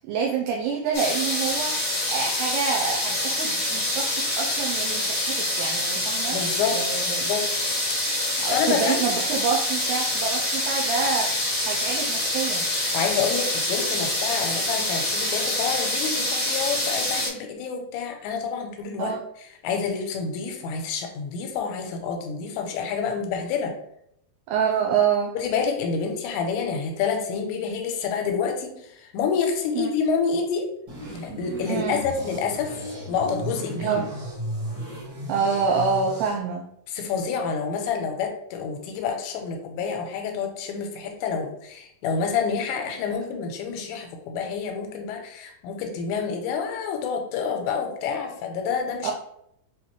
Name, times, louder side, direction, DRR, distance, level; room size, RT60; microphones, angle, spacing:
voice 1, 0.1-6.4 6.7-7.3 8.4-12.9 19.0-19.2 24.5-25.3 29.7-29.9 31.7-32.0 33.8-34.1 35.3-36.7 49.0-49.1, right 6 dB, 80° right, -1 dB, 2.4 m, -27 dB
sound 1, 0.9-17.3, left 1 dB, 50° left, 1.1 m, -26 dB
voice 2, 6.3-6.8 7.1-7.8 8.5-9.0 12.9-19.1 19.6-23.7 25.4-30.7 31.2-32.8 33.1-34.0 36.9-49.1, left 6 dB, 85° left, 4 dB, 2.9 m, -28 dB
sound 2, 30.9-36.3, right 1 dB, 45° right, 1.7 m, -35 dB
7.1 x 2.5 x 3.0 m, 0.74 s
omnidirectional pair, 5.1 m